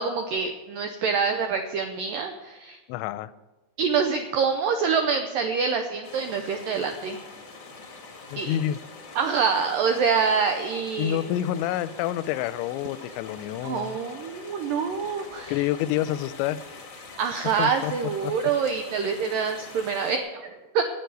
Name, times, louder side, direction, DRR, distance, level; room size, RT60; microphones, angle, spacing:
voice 1, 0.0-2.8 3.8-7.2 8.4-8.6 9.2-11.2 13.6-15.6 17.2-20.8, right 6 dB, 85° right, 5 dB, 1.9 m, -26 dB
voice 2, 2.9-3.3 8.3-8.8 11.0-14.0 15.5-16.6 17.6-17.9 18.2-18.3, left 12 dB, 85° left, 15 dB, 2.9 m, -28 dB
sound 1, 6.0-20.2, left 3 dB, 55° left, 1.2 m, -44 dB
11.5 x 8.8 x 9.3 m, 1.1 s
omnidirectional pair, 5.1 m